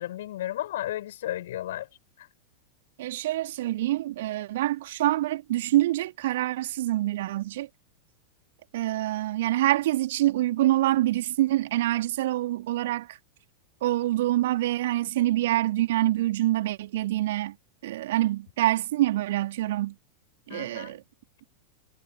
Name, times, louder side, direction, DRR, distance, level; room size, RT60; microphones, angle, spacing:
voice 1, 0.0-1.9 2.2-2.3 20.5-21.0, left 13 dB, 60° left, 6.1 m, -34 dB
voice 2, 3.0-7.7 8.7-13.2 13.8-17.6 17.8-19.9 20.5-21.0, right 15 dB, 55° right, 2.9 m, -26 dB
figure-of-eight pair, 90°, 0 cm